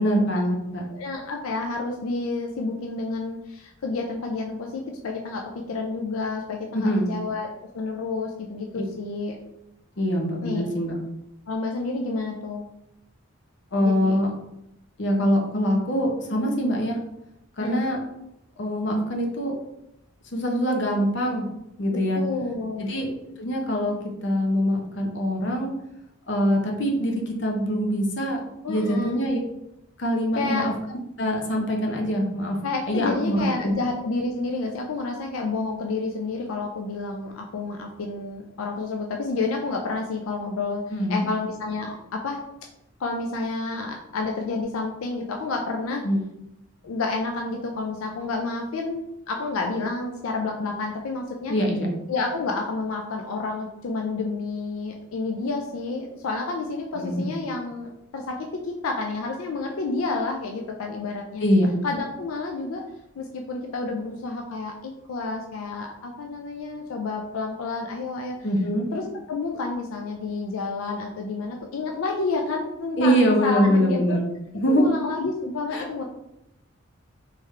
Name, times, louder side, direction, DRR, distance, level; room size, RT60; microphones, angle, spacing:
voice 1, 0.0-0.8 6.7-7.1 10.0-10.9 13.7-14.3 15.0-17.0 17.6-18.0 18.6-19.5 20.3-21.5 21.8-22.2 22.8-23.1 23.4-24.0 24.2-25.7 26.3-28.4 28.7-29.4 30.0-30.7 31.2-32.6 32.9-33.7 40.9-41.3 46.0-46.2 51.5-51.9 56.9-57.3 61.4-61.7 68.4-68.9 73.0-74.2 74.5-74.9 75.7-75.9, equal, 55° left, 1 dB, 0.8 m, -23 dB
voice 2, 0.9-7.5 7.7-9.4 10.4-10.6 11.5-12.7 13.8-14.2 17.6-17.8 21.9-22.9 28.6-29.2 30.4-30.7 32.6-40.8 41.1-42.4 43.0-46.0 46.8-51.5 52.1-58.4 58.6-61.4 61.8-62.8 63.2-68.4 68.9-74.0 74.7-76.0, left 3 dB, 85° left, 2 dB, 0.4 m, -30 dB
3.5 x 3.4 x 3.2 m, 0.86 s
head